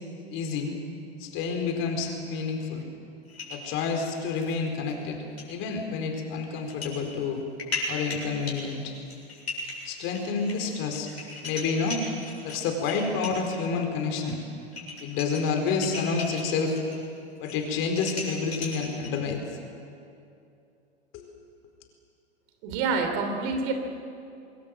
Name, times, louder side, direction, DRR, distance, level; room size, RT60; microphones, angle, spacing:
voice 1, 0.3-0.7 1.2-2.8 3.5-5.2 5.5-7.4 7.9-9.0 9.8-11.1 11.4-12.0 12.4-14.4 15.0-16.8 17.4-19.4 21.1-21.3, left 5 dB, 40° left, 4 dB, 4.5 m, -29 dB
sound 1, 3.3-4.6 4.9-5.0 5.4-5.5 6.6-7.0 7.3-13.5 14.3-14.4 14.6-17.0 17.3-19.2, left 3 dB, 80° left, 7.6 m, -37 dB
voice 2, 22.6-23.7, right 4 dB, 45° right, 5 dB, 3.4 m, -27 dB
26.0 x 20.5 x 7.8 m, 2.6 s
hypercardioid pair, 105°, 32 cm